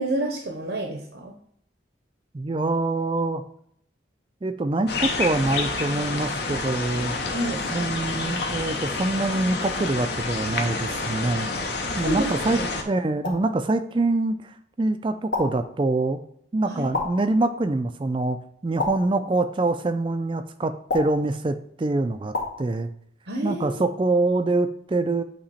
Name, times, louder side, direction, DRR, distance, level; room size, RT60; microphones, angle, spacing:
voice 1, 0.0-1.3 7.3-7.6 12.0-12.3 12.6-12.7 16.7-16.8 23.3-23.7, right 1 dB, 75° right, 2 dB, 0.9 m, -28 dB
voice 2, 2.3-3.4 4.4-7.1 7.7-11.5 11.9-16.2 16.5-22.9 23.4-25.2, right 2 dB, 25° right, 9 dB, 0.3 m, -25 dB
sound 1, 4.9-12.8, left 3 dB, 55° left, 0.8 m, -28 dB
sound 2, 13.2-13.6 15.3-15.7 16.9-17.3 18.8-19.2 20.9-21.3 22.3-22.6, left 3 dB, 75° left, 1.6 m, -29 dB
8.6 x 2.9 x 4.1 m, 0.68 s
head